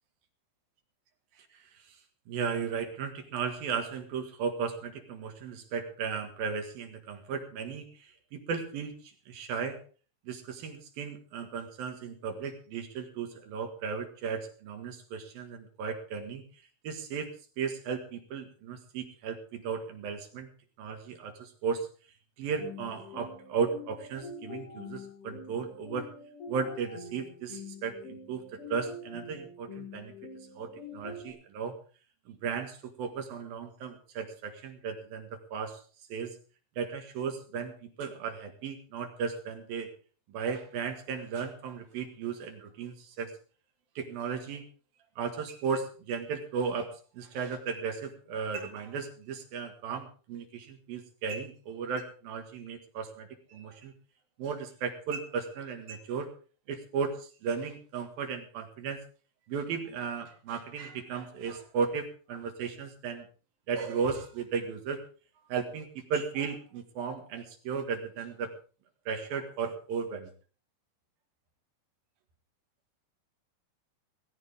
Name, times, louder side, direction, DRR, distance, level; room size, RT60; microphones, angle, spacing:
voice 1, 1.5-2.0 2.3-9.8 10.3-16.4 16.8-17.3 17.6-20.5 20.8-21.9 22.4-26.1 26.5-28.4 28.7-30.1 30.6-31.8 32.3-35.8 36.1-36.3 36.8-39.9 40.3-43.3 44.0-44.6 45.2-53.9 54.4-56.3 56.7-59.0 59.5-63.3 63.7-65.0 65.5-68.5 69.1-70.3, right 6 dB, 60° right, 5 dB, 3.0 m, -35 dB
sound 1, 22.6-31.3, left 4 dB, 30° left, 5.1 m, -45 dB
19.0 x 15.5 x 3.6 m, 0.39 s
omnidirectional pair, 5.5 m